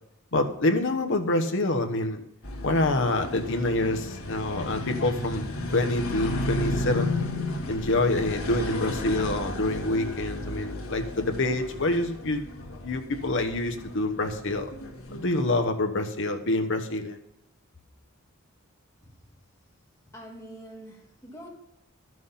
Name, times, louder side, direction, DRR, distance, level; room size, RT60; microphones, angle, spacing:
voice 1, 0.3-2.2 2.6-5.5 5.7-7.2 7.7-12.5 12.8-14.7 15.1-17.2, left 2 dB, 60° left, 6 dB, 1.1 m, -26 dB
sound 1, 2.4-15.6, left 1 dB, 80° left, 1.8 m, -34 dB
voice 2, 20.1-21.5, right 1 dB, 15° left, -2 dB, 2.3 m, -44 dB
13.0 x 6.2 x 5.7 m, 0.87 s
head